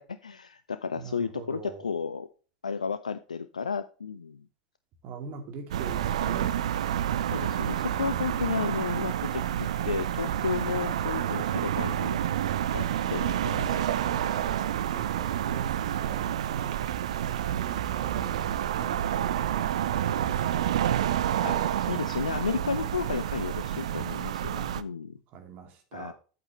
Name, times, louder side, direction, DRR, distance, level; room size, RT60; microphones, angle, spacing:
voice 1, 0.0-2.3 2.6-4.5 7.3-12.2 12.7-13.8 21.4-25.2 25.9-26.1, left 6 dB, 80° left, 0.5 m, -33 dB
voice 2, 1.0-1.8 5.0-6.6 8.1-8.3 13.9-16.8 17.5-20.8 24.5-24.7 25.3-26.1, right 5 dB, 45° right, 2.5 m, -42 dB
sound 1, 5.7-24.8, right 11 dB, 65° right, 0.6 m, -29 dB
8.6 x 8.6 x 3.1 m
figure-of-eight pair, 85°, 4 cm